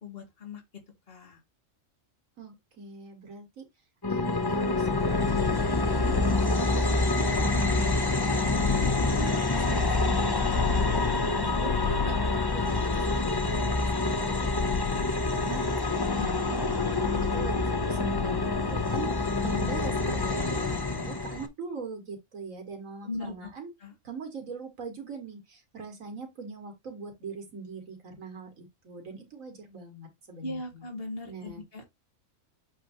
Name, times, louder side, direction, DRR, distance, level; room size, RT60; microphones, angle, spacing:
voice 1, 0.0-0.6 1.1-1.4 16.1-16.3 16.9-17.0 23.0-23.5 23.8-23.9 30.4-31.9, left 2 dB, 45° left, 2.3 m, -39 dB
voice 2, 2.4-3.6 4.1-6.9 7.2-7.9 8.3-12.1 12.5-14.8 15.3-23.7 24.0-30.9 31.3-31.6, right 4 dB, 85° right, 2.4 m, -41 dB
sound 1, 4.0-21.5, left 3 dB, 25° left, 0.7 m, -26 dB
7.8 x 3.3 x 4.5 m
omnidirectional pair, 1.3 m